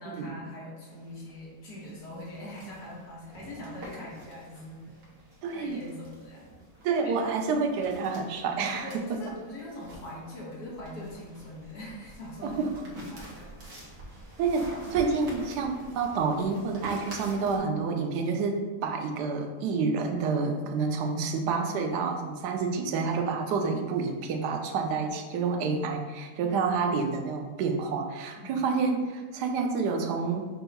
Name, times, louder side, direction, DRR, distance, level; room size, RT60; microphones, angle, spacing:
voice 1, 0.0-4.8 5.5-6.5 7.0-7.4 8.8-13.5 26.4-26.7 28.3-28.6, left 1 dB, 75° left, -5 dB, 1.8 m, -42 dB
newspaper order, 0.9-17.6, right 1 dB, 60° right, 1.3 m, -47 dB
voice 2, 5.4-5.8 6.8-9.0 12.4-12.7 14.4-30.5, right 4 dB, 85° right, 4 dB, 1.1 m, -28 dB
5.5 x 2.3 x 3.9 m, 1.4 s
omnidirectional pair, 1.7 m